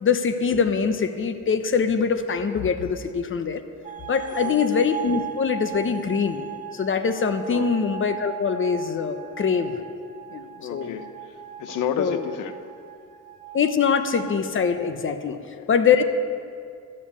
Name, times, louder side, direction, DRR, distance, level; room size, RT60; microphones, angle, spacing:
voice 1, 0.0-3.6 4.1-6.5 6.7-9.7 10.3-11.0 12.0-12.2 13.5-15.4 15.7-16.0, left 6 dB, 40° left, 9 dB, 1.1 m, -23 dB
sound 1, 3.8-14.9, right 9 dB, 25° right, 0.8 m, -38 dB
voice 2, 10.6-12.6 15.3-15.7, left 8 dB, 85° left, 10 dB, 0.9 m, -32 dB
13.0 x 7.7 x 8.5 m, 2.3 s
cardioid pair, 90°, 30 cm